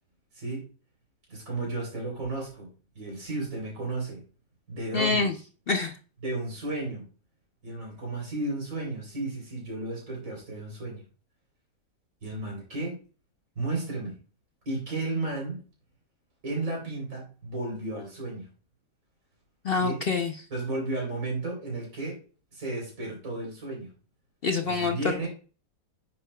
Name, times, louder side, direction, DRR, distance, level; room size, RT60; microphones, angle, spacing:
voice 1, 1.3-2.7 2.9-4.2 4.7-5.3 6.2-7.0 7.6-11.0 12.2-13.0 13.6-14.1 14.7-15.6 16.4-18.5 19.8-20.0 20.5-22.2 22.5-23.9 24.6-25.3, right 2 dB, 50° right, -2 dB, 4.1 m, -33 dB
voice 2, 4.9-5.3 5.7-5.9 19.6-20.3 24.4-25.3, left 4 dB, 65° left, 5 dB, 0.5 m, -26 dB
9.8 x 6.7 x 2.3 m, 0.36 s
omnidirectional pair, 1.8 m